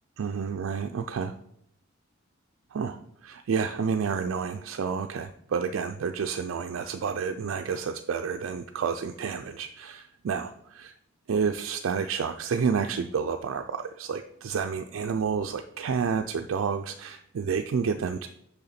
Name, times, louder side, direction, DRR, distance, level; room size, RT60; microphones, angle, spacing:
voice 1, 0.2-1.4 2.7-10.9 11.3-18.3, right 6 dB, 70° right, 6 dB, 0.4 m, -30 dB
6.7 x 5.7 x 4.2 m, 0.74 s
head